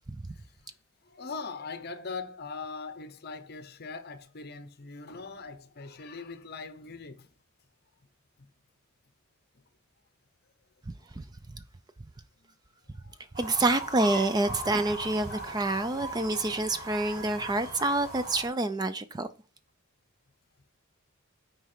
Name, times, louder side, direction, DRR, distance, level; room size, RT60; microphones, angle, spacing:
voice 1, 0.2-0.7 1.0-7.3 8.4-8.5 10.9-11.3 12.4-12.5 12.9-13.4, left 4 dB, 45° left, 0.8 m, -42 dB
sound 1, 13.3-18.5, right 1 dB, 35° right, 4.2 m, -39 dB
voice 2, 13.4-19.3, right 2 dB, 20° right, 0.4 m, -27 dB
8.2 x 4.7 x 4.4 m
head